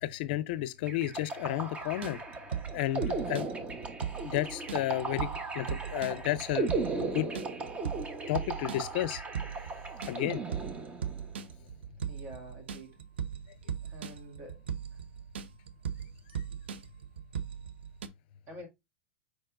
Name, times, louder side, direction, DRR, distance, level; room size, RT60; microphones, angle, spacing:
voice 1, 0.0-2.2 2.7-3.5 4.2-5.3 5.5-6.7 7.0-7.3 8.3-9.2 10.1-10.4, left 14 dB, 60° left, 0.5 m, -32 dB
sound 1, 0.9-11.3, right 3 dB, 20° right, 0.9 m, -37 dB
sound 2, 1.8-18.1, right 8 dB, 80° right, 0.5 m, -39 dB
voice 2, 12.1-13.0 13.8-14.6 18.5-18.7, equal, 40° right, 2.0 m, -47 dB
4.7 x 4.3 x 2.4 m
hypercardioid pair, 110°, 6 cm